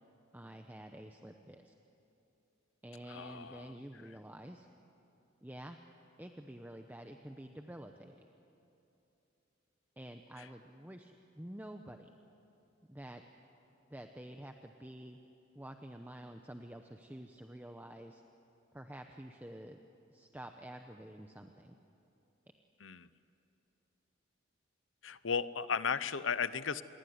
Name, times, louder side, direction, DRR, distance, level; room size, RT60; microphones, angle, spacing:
voice 1, 0.3-1.7 2.8-4.7 5.4-5.8 6.2-8.3 10.0-12.1 12.9-13.2 13.9-15.2 15.5-18.2 18.7-19.8 20.1-21.7, right 1 dB, 10° right, 5 dB, 0.9 m, -49 dB
voice 2, 3.1-3.7 10.4-10.5 22.8-23.1 25.0-26.8, left 6 dB, 75° left, 15 dB, 0.8 m, -35 dB
28.0 x 22.0 x 9.5 m, 2.8 s
head